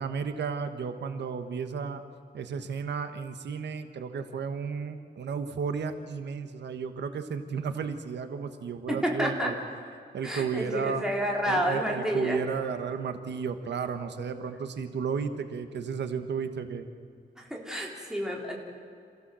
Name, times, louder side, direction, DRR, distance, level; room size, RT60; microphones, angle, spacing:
voice 1, 0.0-2.0 2.3-9.5 10.1-11.1 11.4-16.9, right 6 dB, 90° right, 8 dB, 1.4 m, -33 dB
voice 2, 8.9-9.5 10.2-12.4 17.4-18.6, equal, 5° right, -1 dB, 3.4 m, -29 dB
27.5 x 15.5 x 7.6 m, 2.3 s
wide cardioid pair, 180°, 17 cm